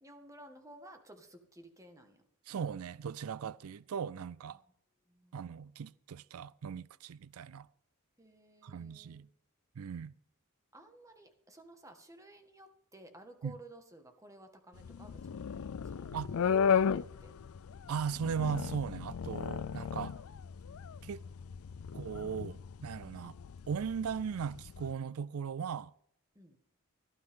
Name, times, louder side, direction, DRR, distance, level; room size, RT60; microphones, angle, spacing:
voice 1, 0.0-2.2 4.5-4.7 5.1-5.6 8.2-9.3 10.7-17.4 23.1-23.4 26.4-26.6, right 1 dB, 15° right, 1.8 m, -55 dB
voice 2, 2.5-4.6 5.3-7.7 8.6-9.3 9.8-10.1 13.4-13.5 16.1-16.3 17.9-20.2 21.0-21.2 21.9-23.3 23.7-25.9, right 7 dB, 90° right, 0.4 m, -38 dB
sound 1, 14.8-24.9, left 7 dB, 80° left, 0.4 m, -35 dB
17.5 x 12.0 x 3.8 m
head